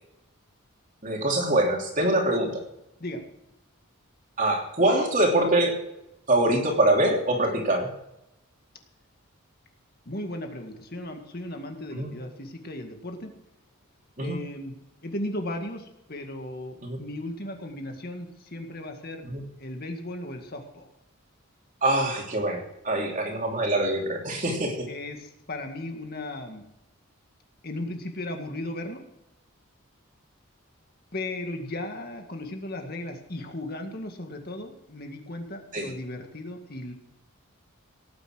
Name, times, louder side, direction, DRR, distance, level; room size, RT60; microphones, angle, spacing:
voice 1, 1.0-2.6 4.4-5.7 6.3-7.9 11.9-12.1 14.2-14.4 16.8-17.0 19.2-19.4 21.8-24.9 35.7-35.9, right 1 dB, 35° right, 1 dB, 3.0 m, -24 dB
voice 2, 10.1-13.3 14.2-14.7 15.0-19.3 19.6-20.9 24.9-26.7 27.6-29.0 31.1-36.9, left 1 dB, 45° left, 4 dB, 2.0 m, -36 dB
18.0 x 9.5 x 6.3 m, 0.87 s
head